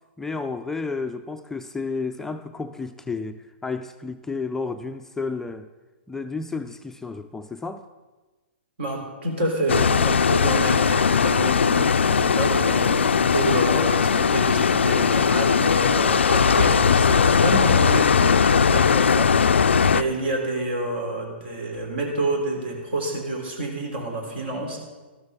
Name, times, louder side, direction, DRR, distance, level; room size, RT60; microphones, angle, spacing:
voice 1, 0.2-5.7 6.1-7.9, left 4 dB, 5° left, 7 dB, 0.4 m, -31 dB
voice 2, 8.8-24.8, right 1 dB, 65° right, 1 dB, 3.4 m, -28 dB
sound 1, 9.7-20.0, left 6 dB, 85° left, 0.4 m, -19 dB
sound 2, 13.6-16.2 16.5-18.8, left 1 dB, 85° right, 2.8 m, -43 dB
13.0 x 12.5 x 3.6 m, 1.2 s
hypercardioid pair, 120°, 6 cm